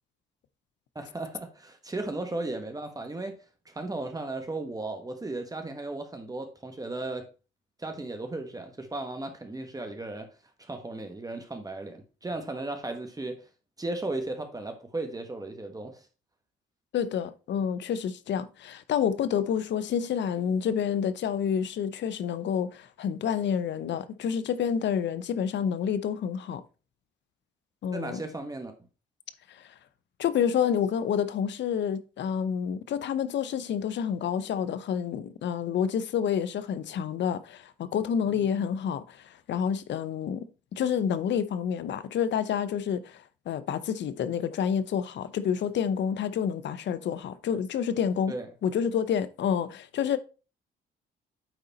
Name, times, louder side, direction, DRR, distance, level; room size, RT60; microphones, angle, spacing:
voice 1, 0.9-3.3 3.6-7.3 7.8-10.3 10.6-13.5 13.8-16.1 27.9-28.7 38.3-38.5 48.3-48.5, right 2 dB, 20° right, 1.3 m, -35 dB
voice 2, 16.9-26.6 27.8-28.2 29.5-29.7 30.2-48.3 48.6-50.2, left 8 dB, 65° left, 0.8 m, -29 dB
9.0 x 3.9 x 4.1 m
cardioid pair, 90°, 20 cm